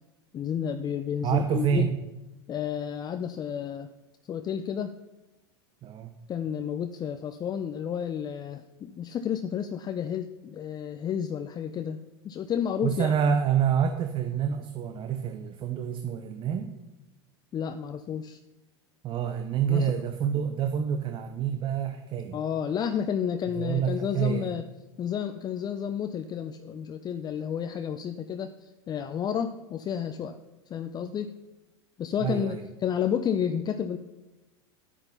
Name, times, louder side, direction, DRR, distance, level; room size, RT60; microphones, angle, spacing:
voice 1, 0.3-1.9 2.5-3.9 4.3-5.0 6.3-13.1 17.5-18.4 19.7-19.9 22.3-24.7 25.0-30.4 30.7-31.4 32.0-34.0, left 8 dB, 30° left, 10 dB, 0.6 m, -31 dB
voice 2, 1.2-2.0 5.8-6.1 12.8-16.7 19.0-22.4 23.6-24.5 32.2-32.6, right 8 dB, 35° right, 7 dB, 0.9 m, -27 dB
10.0 x 8.8 x 5.6 m, 1.0 s
hypercardioid pair, 85°, 14 cm